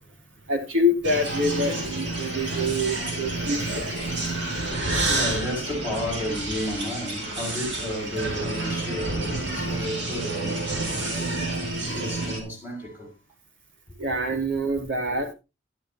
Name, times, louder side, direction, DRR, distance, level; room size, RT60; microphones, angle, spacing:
voice 1, 0.5-3.8 14.0-15.3, left 1 dB, 85° right, 3.4 m, -26 dB
sound 1, 1.0-12.4, right 2 dB, 60° right, 4.1 m, -29 dB
voice 2, 4.4-13.1, left 1 dB, 10° right, 6.3 m, -33 dB
11.5 x 11.5 x 2.9 m
head